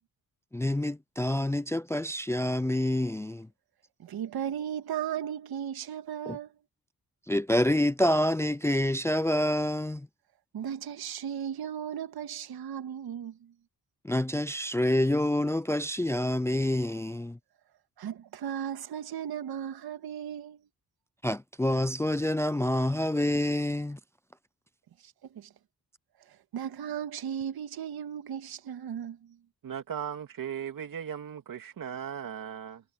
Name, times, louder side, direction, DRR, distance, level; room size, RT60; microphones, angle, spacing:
voice 1, 0.5-3.5 6.3-6.4 7.3-10.1 14.0-17.4 21.2-24.0, left 1 dB, 5° left, 0.5 m, -27 dB
voice 2, 4.0-6.5 10.5-13.5 18.0-20.6 25.0-25.5 26.3-29.4, right 9 dB, 85° right, 2.1 m, -36 dB
voice 3, 29.6-32.8, right 8 dB, 65° right, 2.7 m, -37 dB
cardioid pair, 105°, 36 cm